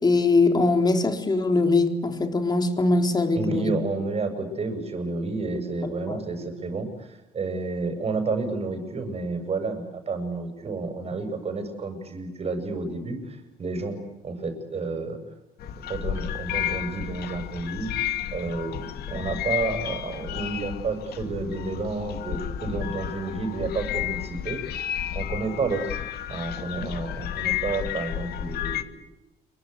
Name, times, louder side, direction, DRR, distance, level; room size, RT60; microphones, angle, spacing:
voice 1, 0.0-3.7 6.1-6.2, left 3 dB, 25° left, 5 dB, 4.1 m, -22 dB
voice 2, 3.3-15.2 15.6-17.9 18.3-24.6 25.1-26.0 26.3-28.9, right 3 dB, 35° right, 8 dB, 7.9 m, -30 dB
sound 1, 15.6-28.8, left 11 dB, 70° left, 2.3 m, -32 dB
28.0 x 24.0 x 8.4 m, 1.0 s
cardioid pair, 110°, 17 cm